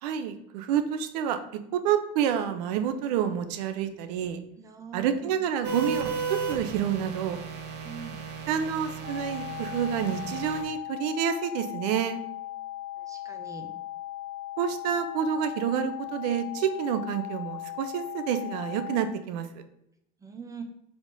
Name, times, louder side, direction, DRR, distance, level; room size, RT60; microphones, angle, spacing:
voice 1, 0.0-4.4 4.9-7.4 8.5-12.2 14.6-19.6, right 8 dB, 90° right, 10 dB, 0.7 m, -28 dB
voice 2, 4.6-5.4 7.8-8.2 13.0-13.7 20.2-20.6, right 6 dB, 15° right, 4 dB, 0.9 m, -42 dB
sound 1, 5.6-10.6, right 5 dB, 60° right, 1.2 m, -35 dB
sound 2, 9.0-19.0, left 14 dB, 35° right, 1.3 m, -38 dB
5.0 x 3.7 x 5.3 m, 0.78 s
supercardioid pair, 125°, 20 cm